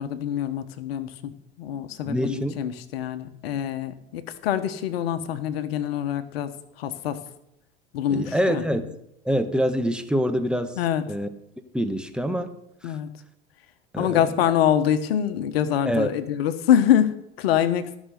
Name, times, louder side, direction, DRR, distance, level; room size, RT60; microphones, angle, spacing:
voice 1, 0.0-1.3 1.6-6.5 6.8-7.2 7.9-8.6 10.8-11.0 12.8-13.1 14.0-18.0, left 10 dB, 70° left, 11 dB, 1.4 m, -25 dB
voice 2, 2.1-2.6 8.1-9.0 9.2-10.8 11.1-11.3 11.7-12.5 12.8-13.0 13.9-14.2 15.8-16.1, equal, 5° right, 8 dB, 1.4 m, -25 dB
16.0 x 6.4 x 9.4 m, 0.79 s
hypercardioid pair, 85°, 31 cm